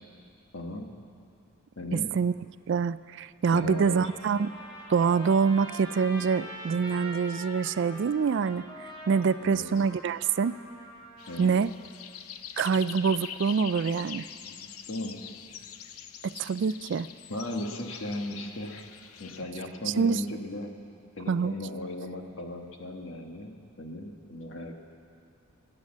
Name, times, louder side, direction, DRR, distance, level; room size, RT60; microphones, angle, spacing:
voice 1, 0.5-0.9 1.7-2.1 3.5-4.1 9.4-9.6 11.3-11.5 14.4-15.2 17.3-18.9 19.2-20.8 21.2-24.7, left 1 dB, 60° left, 3 dB, 1.6 m, -37 dB
voice 2, 2.7-4.5 4.9-8.6 9.1-10.6 11.4-11.7 12.6-14.2 16.4-17.1 20.0-20.2 21.3-21.5, right 5 dB, 55° right, 16 dB, 0.3 m, -25 dB
Trumpet, 3.4-11.4, equal, 20° left, 2.7 m, -44 dB
sound 1, 11.2-19.4, left 9 dB, 85° left, 0.6 m, -43 dB
19.0 x 9.8 x 7.4 m, 2.5 s
head